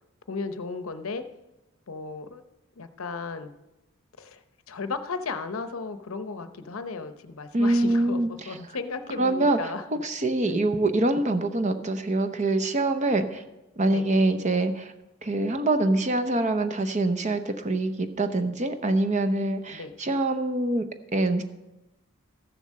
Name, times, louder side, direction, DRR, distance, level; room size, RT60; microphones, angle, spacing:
voice 1, 0.3-1.2 1.9-2.4 2.8-3.5 4.2-4.4 4.7-8.2 8.5-10.0 10.5-10.6 13.9-14.1 19.7-19.9, left 4 dB, 70° left, 10 dB, 0.7 m, -35 dB
voice 2, 7.5-8.6 9.2-9.7 10.0-13.4 13.8-14.9 15.2-20.9 21.1-21.4, right 2 dB, 35° right, 9 dB, 0.8 m, -25 dB
14.0 x 7.2 x 6.5 m, 1.0 s
head